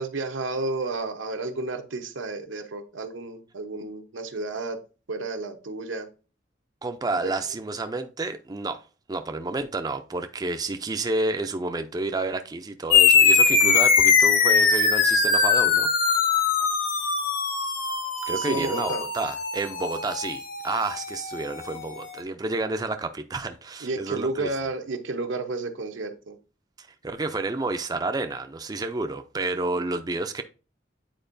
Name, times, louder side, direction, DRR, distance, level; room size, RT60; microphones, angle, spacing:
voice 1, 0.0-4.8 5.1-6.1 7.2-7.3 18.3-19.0 23.8-26.4, right 2 dB, 90° right, 0.9 m, -31 dB
voice 2, 6.8-8.8 9.1-15.9 18.3-24.5 26.8-30.4, right 2 dB, 20° right, 0.4 m, -30 dB
sound 1, 12.9-21.8, left 5 dB, 50° left, 1.1 m, -21 dB
8.9 x 4.4 x 2.6 m
head